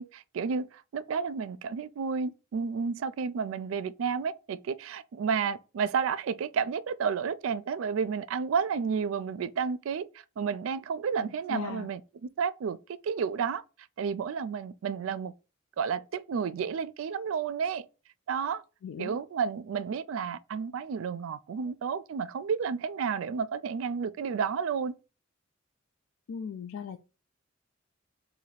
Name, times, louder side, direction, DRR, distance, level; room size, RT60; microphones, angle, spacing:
voice 1, 0.0-10.1 10.4-12.0 12.4-13.6 14.0-15.3 15.8-17.9 18.3-18.6 19.0-24.9, right 6 dB, 70° right, 0.3 m, -31 dB
voice 2, 11.2-11.9 18.8-19.2 26.3-27.0, left 6 dB, 75° left, 0.3 m, -38 dB
3.0 x 2.8 x 4.0 m
head